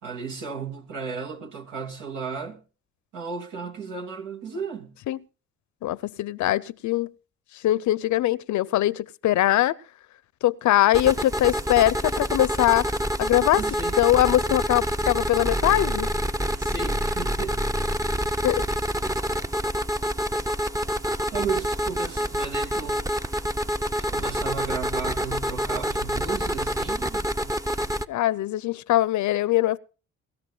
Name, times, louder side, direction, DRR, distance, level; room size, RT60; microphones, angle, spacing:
voice 1, 0.0-2.6 3.1-5.0 13.4-14.0 16.6-17.6 21.3-23.1 24.0-27.6, right 5 dB, 80° right, 3.0 m, -34 dB
voice 2, 5.8-7.1 7.6-9.8 10.4-12.8 13.2-13.6 14.0-16.1 18.4-18.6 28.1-29.8, left 14 dB, 70° left, 0.7 m, -22 dB
sound 1, 10.9-28.0, equal, 10° right, 0.7 m, -27 dB
24.0 x 13.0 x 2.3 m
cardioid pair, 90°, 30 cm